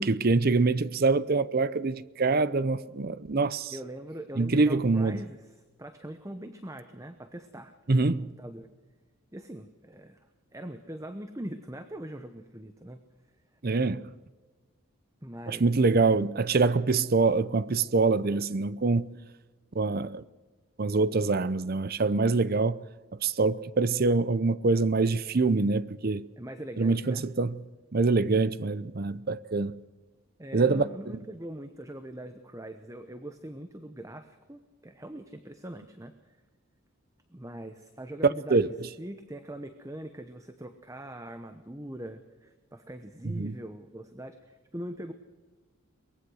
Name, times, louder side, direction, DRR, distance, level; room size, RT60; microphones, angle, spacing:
voice 1, 0.0-3.7 4.4-5.2 7.9-8.3 13.6-14.0 15.5-19.2 19.7-20.2 20.8-22.9 23.2-26.3 26.8-27.6 27.9-29.8 30.5-30.8 38.2-38.7 43.2-43.5, right 3 dB, 45° right, 0.6 m, -25 dB
voice 2, 3.7-7.7 8.2-8.7 9.3-10.2 10.5-13.0 15.2-16.1 26.4-27.2 30.4-36.1 37.3-38.7 39.0-45.1, right 1 dB, 15° right, 0.9 m, -42 dB
23.0 x 19.5 x 6.3 m
head